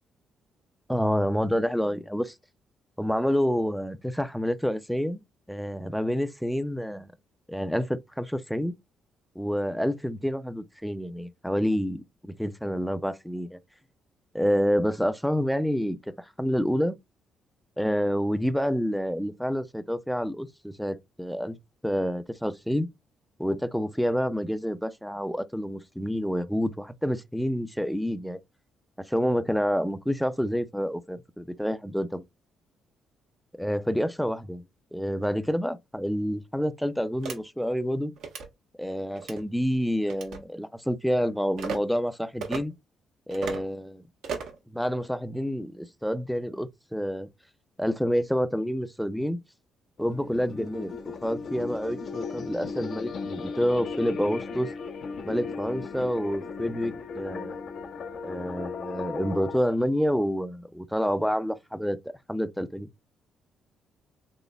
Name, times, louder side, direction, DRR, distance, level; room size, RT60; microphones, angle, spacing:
voice 1, 0.9-2.3 3.0-5.2 5.5-7.1 7.5-8.7 9.4-13.6 14.3-16.9 17.8-21.6 21.8-22.9 23.4-28.4 29.1-32.2 33.6-34.6 34.9-38.1 38.8-42.7 43.3-44.0 44.7-47.3 47.8-49.4 50.0-54.7 55.2-57.6 58.2-62.0 62.3-62.9, equal, ahead, 0.4 m, -28 dB
sound 1, 37.2-37.4 38.2-38.5 39.2-39.4 40.1-40.4 41.6-41.8 42.4-42.6 43.3-43.6 44.2-44.6, right 5 dB, 80° right, 0.9 m, -34 dB
sound 2, 50.0-59.6, left 5 dB, 65° left, 0.6 m, -36 dB
4.0 x 3.0 x 2.2 m
cardioid pair, 90°, 0 cm